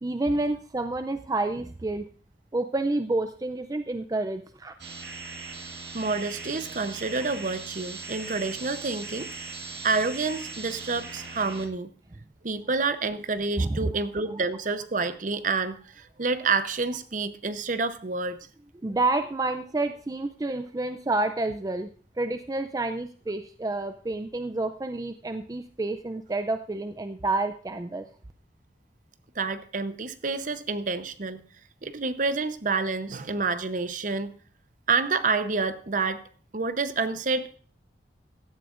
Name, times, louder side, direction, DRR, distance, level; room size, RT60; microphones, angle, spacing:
voice 1, 0.0-2.1 2.5-4.7 13.6-13.9 18.8-21.9 22.2-28.1, right 2 dB, 20° right, 9 dB, 0.4 m, -29 dB
sound 1, 4.8-11.7, right 3 dB, 65° right, 1.7 m, -39 dB
voice 2, 5.9-9.3 9.8-11.9 12.4-18.4 29.4-31.4 31.8-34.3 34.9-36.2 36.5-37.6, right 4 dB, 45° right, 11 dB, 0.8 m, -28 dB
16.5 x 12.0 x 2.5 m, 0.44 s
head